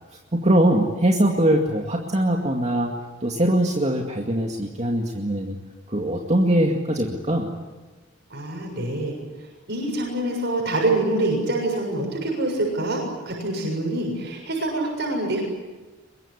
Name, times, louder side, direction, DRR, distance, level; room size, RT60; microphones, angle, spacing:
voice 1, 0.3-2.9 3.2-5.6 5.9-7.5, right 1 dB, 35° right, 1 dB, 2.2 m, -21 dB
voice 2, 8.3-9.2 9.7-15.4, right 2 dB, 60° right, 0 dB, 7.0 m, -25 dB
24.5 x 22.0 x 9.9 m, 1.2 s
head